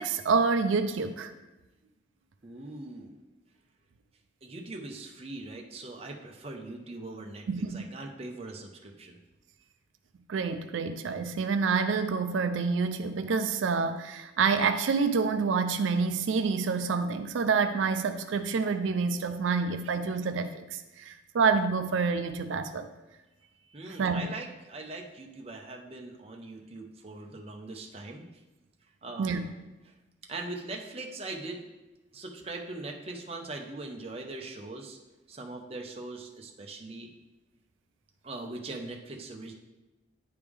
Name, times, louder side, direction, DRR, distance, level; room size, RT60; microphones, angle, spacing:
voice 1, 0.0-1.3 7.5-7.9 10.3-22.9 24.0-24.3 29.2-29.5, right 5 dB, 90° right, 9 dB, 0.4 m, -28 dB
voice 2, 2.4-3.2 4.4-9.2 23.7-28.2 29.0-29.6 29.8-29.9 30.3-31.7 32.1-35.0 35.3-37.1 38.2-39.5, right 2 dB, 30° right, 2 dB, 0.7 m, -41 dB
9.6 x 3.3 x 3.5 m, 1.1 s
head